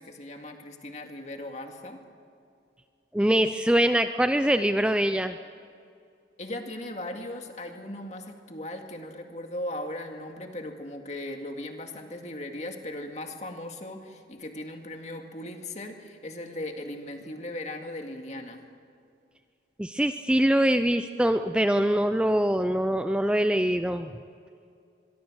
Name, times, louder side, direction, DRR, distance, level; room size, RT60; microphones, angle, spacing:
voice 1, 0.0-2.0 6.4-18.6, left 1 dB, 40° left, 4 dB, 2.2 m, -38 dB
voice 2, 3.1-5.4 19.8-24.1, right 1 dB, 5° right, 9 dB, 0.5 m, -23 dB
24.5 x 23.0 x 6.4 m, 2.4 s
head